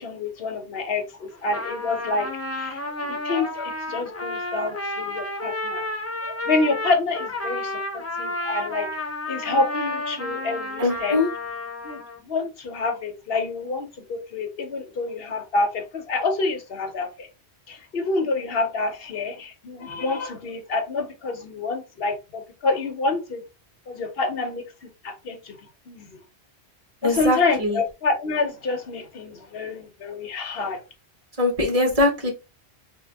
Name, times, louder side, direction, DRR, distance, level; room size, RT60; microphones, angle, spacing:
voice 1, 0.0-2.3 2.6-5.9 6.3-8.9 9.3-11.2 11.8-17.3 17.7-23.4 23.9-24.6 25.0-25.6 25.9-26.2 27.0-30.8, left 3 dB, 65° left, 1.0 m, -27 dB
Trumpet, 1.3-12.2, left 1 dB, 25° left, 0.3 m, -31 dB
voice 2, 10.8-11.3 27.0-27.8 31.4-32.3, left 2 dB, 35° right, 1.3 m, -22 dB
3.5 x 2.5 x 3.4 m
omnidirectional pair, 1.1 m